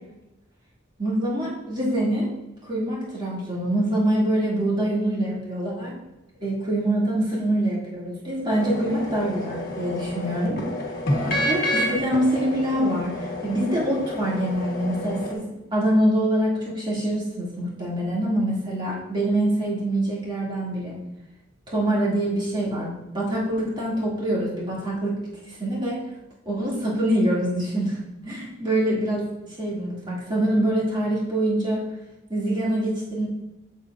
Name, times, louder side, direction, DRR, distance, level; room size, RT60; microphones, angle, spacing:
voice 1, 1.0-2.3 2.6-5.9 6.4-10.6 11.4-21.0 21.7-25.2 25.4-26.0 26.4-28.0 28.2-29.3 29.6-31.8 32.3-33.3, right 1 dB, 25° right, -7 dB, 2.6 m, -25 dB
sound 1, 8.5-15.3, left 1 dB, 50° left, 1.3 m, -29 dB
7.9 x 7.4 x 2.6 m, 0.99 s
head